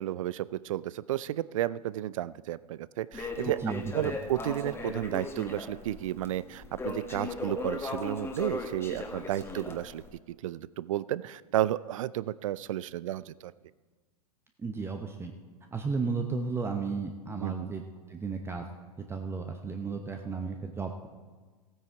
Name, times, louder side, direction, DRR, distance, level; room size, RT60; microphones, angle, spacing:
voice 1, 0.0-3.6 3.9-10.0 10.4-13.5 17.4-17.7, right 13 dB, 55° right, 19 dB, 0.4 m, -32 dB
Crackle, 3.1-10.1, left 3 dB, 10° left, 1.6 m, -38 dB
voice 2, 3.6-4.2 14.6-15.3 15.7-17.8 18.1-18.6 19.1-20.9, right 4 dB, 10° right, 4 dB, 0.8 m, -33 dB
15.5 x 9.0 x 4.6 m, 1.4 s
figure-of-eight pair, 100°, 20 cm